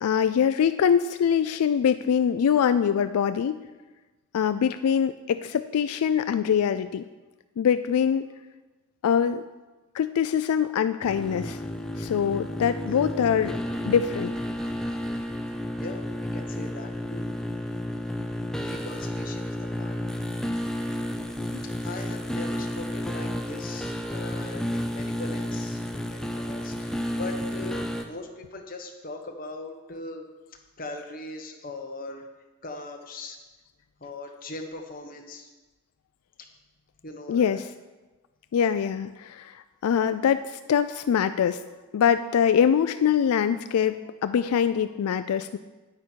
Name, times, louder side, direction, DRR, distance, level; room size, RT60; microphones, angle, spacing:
voice 1, 0.0-3.6 4.3-7.1 7.6-8.3 9.0-9.4 9.9-11.6 12.0-13.6 13.8-14.4 21.5-21.6 37.3-37.6 38.5-41.6 41.9-45.6, left 8 dB, 85° left, 11 dB, 0.3 m, -23 dB
sound 1, 11.0-28.0, equal, 5° left, 0.5 m, -31 dB
voice 2, 15.8-17.3 18.6-20.0 20.9-32.3 32.6-33.4 34.0-35.5 36.4-36.5 37.0-37.6, left 2 dB, 40° left, 3 dB, 1.1 m, -40 dB
9.4 x 8.6 x 4.5 m, 1.2 s
head